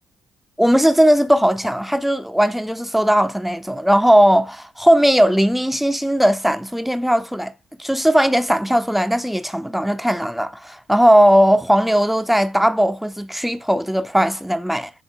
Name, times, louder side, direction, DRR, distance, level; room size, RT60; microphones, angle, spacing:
voice 1, 0.6-7.5 7.8-14.9, equal, 5° right, 0.5 m, -17 dB
7.6 x 6.0 x 2.3 m
figure-of-eight pair, 40°, 5 cm